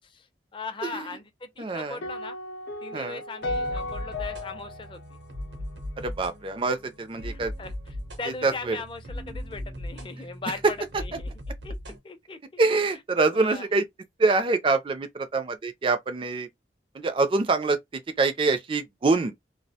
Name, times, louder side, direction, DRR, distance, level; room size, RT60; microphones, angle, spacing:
voice 1, 0.2-2.4 2.8-5.2 7.2-11.3 11.6-11.8 12.0-12.4 12.9-13.0 13.3-13.7, left 4 dB, 30° left, 0.4 m, -39 dB
voice 2, 1.6-2.0 2.9-3.2 6.0-7.5 8.4-8.8 12.6-13.8 14.2-16.5 16.9-19.3, right 3 dB, 30° right, 0.4 m, -25 dB
sound 1, 2.0-6.3, left 2 dB, 85° left, 0.5 m, -35 dB
sound 2, 3.4-12.0, left 1 dB, 85° right, 0.8 m, -38 dB
2.3 x 2.1 x 2.7 m
head